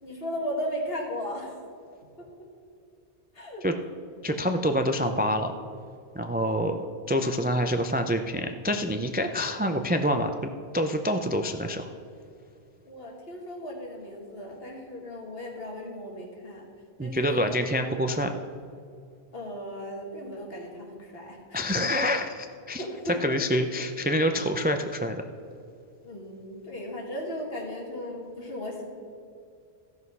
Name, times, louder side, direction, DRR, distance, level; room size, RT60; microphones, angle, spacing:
voice 1, 0.0-1.6 2.2-2.3 3.3-3.7 6.6-6.7 12.8-16.7 17.0-17.5 19.3-22.0 22.8-23.4 26.0-28.9, equal, 65° left, 0 dB, 2.1 m, -36 dB
voice 2, 4.2-5.5 6.1-6.8 7.1-10.3 10.7-11.9 17.0-18.3 21.5-22.8 23.2-25.2, equal, 15° right, 6 dB, 0.3 m, -26 dB
14.5 x 6.3 x 5.5 m, 2.4 s
omnidirectional pair, 1.1 m